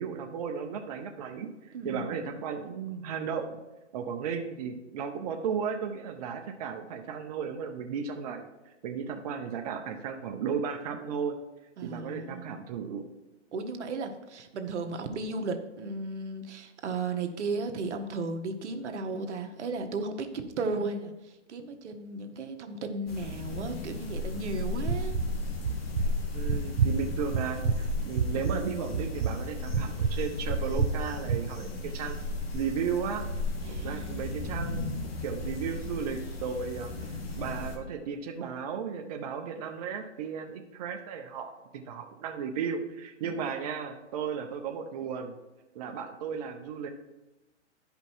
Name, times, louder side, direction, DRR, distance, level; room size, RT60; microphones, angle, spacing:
voice 1, 0.0-3.6 3.9-8.5 8.8-11.4 11.8-13.0 26.3-32.2 32.5-33.2 33.7-34.9 35.2-37.1 37.4-45.4 45.7-46.9, right 6 dB, 35° right, 3 dB, 0.6 m, -35 dB
voice 2, 1.7-2.2 11.8-12.6 13.5-25.2 31.6-31.9 33.6-34.4, right 3 dB, 70° right, 6 dB, 1.2 m, -35 dB
sound 1, 23.1-37.8, left 2 dB, 55° left, 1.7 m, -35 dB
sound 2, 24.9-25.3 25.6-26.1 26.5-27.0 27.3-27.8 28.2-28.6 28.9-29.4 29.7-30.1 30.5-31.0 31.3-31.4, right 6 dB, 85° right, 0.9 m, -27 dB
11.0 x 5.2 x 4.5 m, 1.0 s
hypercardioid pair, 145°, 36 cm